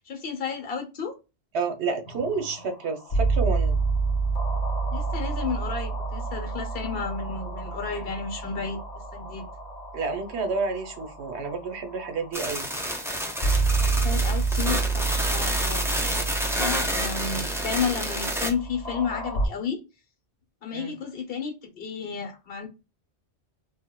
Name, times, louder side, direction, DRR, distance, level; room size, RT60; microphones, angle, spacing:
voice 1, 0.0-1.1 4.9-8.8 9.1-9.5 13.8-16.3 16.6-19.8 20.6-22.7, left 6 dB, 60° left, 1.1 m, -32 dB
voice 2, 1.5-3.8 9.9-12.7 20.7-20.9, right 4 dB, 75° right, 1.0 m, -30 dB
sound 1, 2.1-19.5, right 4 dB, 45° left, 0.8 m, -29 dB
sound 2, 12.3-18.5, equal, 5° right, 0.5 m, -29 dB
3.6 x 2.5 x 2.2 m
omnidirectional pair, 1.1 m